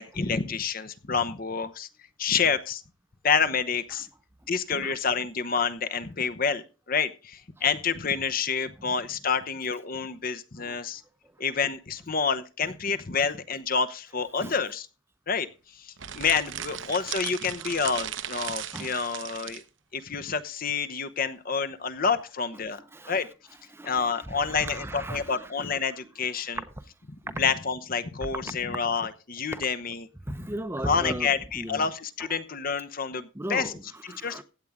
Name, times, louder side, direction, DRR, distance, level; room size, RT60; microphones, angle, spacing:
voice 1, 0.0-1.9 2.2-2.8 3.2-4.1 4.5-11.0 11.4-14.9 15.3-15.5 15.7-19.6 19.9-22.8 23.1-23.3 23.8-26.6 27.4-30.1 30.8-33.7 34.2-34.4, left 5 dB, 45° left, 0.9 m, -28 dB
sound 1, 16.0-19.7, right 10 dB, 65° right, 0.9 m, -36 dB
voice 2, 22.8-23.2 23.7-25.5 26.8-26.9 27.3-27.4 29.5-29.6 30.2-31.9 33.3-34.4, right 1 dB, 10° right, 0.7 m, -37 dB
16.0 x 9.4 x 3.6 m
head